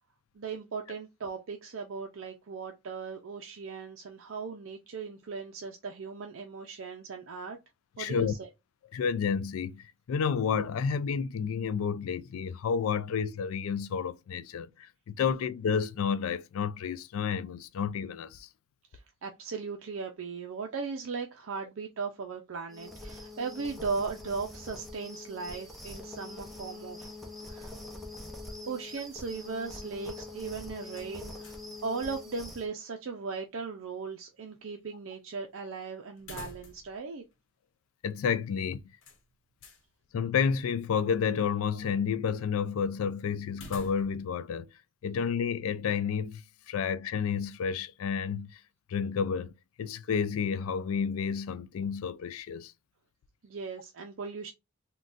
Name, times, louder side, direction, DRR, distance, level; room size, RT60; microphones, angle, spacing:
voice 1, 0.3-7.6 8.0-8.5 18.9-27.1 27.5-27.8 28.7-37.2 53.4-54.5, right 4 dB, 65° right, 0.5 m, -38 dB
voice 2, 8.0-8.3 8.9-18.5 38.0-38.8 40.1-44.7 45.0-48.6 48.9-52.7, left 6 dB, 75° left, 0.3 m, -30 dB
sound 1, 22.7-32.7, left 2 dB, ahead, 0.6 m, -44 dB
sound 2, 30.9-31.8 32.1-32.2 36.2-37.0 37.3-37.4 39.0-39.9 43.5-44.4, left 2 dB, 60° left, 0.9 m, -48 dB
3.8 x 2.2 x 2.4 m
head